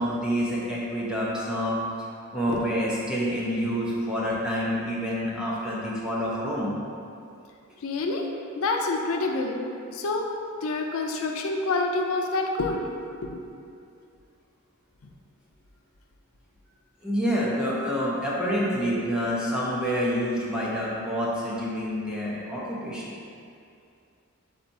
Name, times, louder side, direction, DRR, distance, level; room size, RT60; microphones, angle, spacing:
voice 1, 0.0-1.8 2.3-6.7 17.0-23.2, equal, 5° right, -7 dB, 0.6 m, -27 dB
voice 2, 7.8-8.3 8.6-9.6 9.9-10.3 10.6-12.8 13.2-13.4, left 3 dB, 85° left, 2 dB, 0.4 m, -27 dB
4.0 x 2.7 x 4.5 m, 2.5 s
head